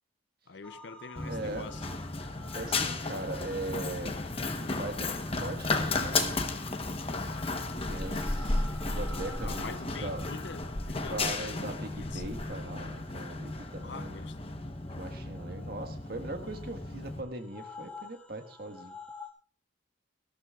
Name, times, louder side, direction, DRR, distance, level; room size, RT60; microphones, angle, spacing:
voice 1, 0.5-1.9 5.1-5.2 9.4-12.3 13.8-14.4, left 4 dB, 60° left, 0.6 m, -45 dB
sound 1, 0.6-19.3, left 3 dB, 5° left, 1.7 m, -51 dB
Run, 1.2-17.2, left 3 dB, 30° left, 1.0 m, -34 dB
voice 2, 1.2-1.7 2.5-4.1 4.6-6.6 7.7-10.2 11.1-14.2 14.9-18.9, right 2 dB, 50° right, 1.5 m, -40 dB
sound 2, 5.7-6.7, right 2 dB, 15° right, 1.9 m, -41 dB
20.0 x 14.0 x 2.4 m
head